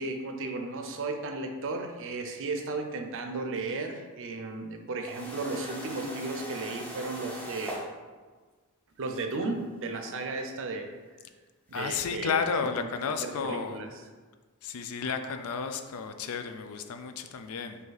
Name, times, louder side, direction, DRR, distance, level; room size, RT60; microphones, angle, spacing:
voice 1, 0.0-7.8 9.0-10.9 11.7-12.4 12.8-12.9 13.2-14.0 15.1-15.3, right 3 dB, 60° right, 5 dB, 0.5 m, -35 dB
sound 1, 5.1-7.9 9.7-9.8 11.7-11.8, equal, 5° left, 0.7 m, -40 dB
voice 2, 11.7-13.8 14.6-17.8, left 5 dB, 70° left, 8 dB, 0.4 m, -32 dB
5.0 x 2.7 x 4.0 m, 1.4 s
head